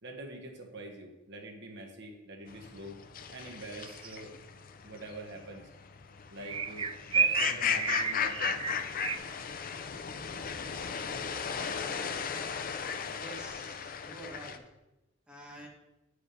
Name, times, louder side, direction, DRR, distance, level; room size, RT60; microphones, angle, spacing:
voice 1, 0.0-3.0 3.3-4.3 4.8-5.7 6.3-8.6, right 2 dB, 60° right, 2 dB, 1.3 m, -45 dB
sound 1, 2.5-14.6, left 7 dB, 45° left, 0.5 m, -36 dB
sound 2, 3.8-4.2 6.4-9.2, right 5 dB, 25° right, 0.3 m, -30 dB
voice 2, 13.2-14.6 15.3-15.7, equal, 5° right, -2 dB, 1.6 m, -48 dB
8.7 x 4.9 x 5.1 m, 1.0 s
head